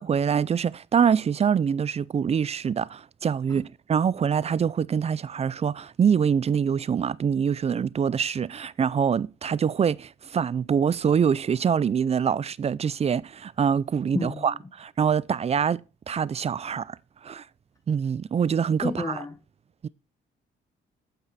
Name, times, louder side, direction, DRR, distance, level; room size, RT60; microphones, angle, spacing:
voice 1, 0.0-15.8 16.1-17.0 17.2-17.4 17.9-19.2 19.8-19.9, right 7 dB, 30° right, 0.4 m, -25 dB
voice 2, 14.1-14.4 18.8-19.3, left 2 dB, 15° left, 0.7 m, -29 dB
8.9 x 8.1 x 4.1 m
cardioid pair, 90°, 20 cm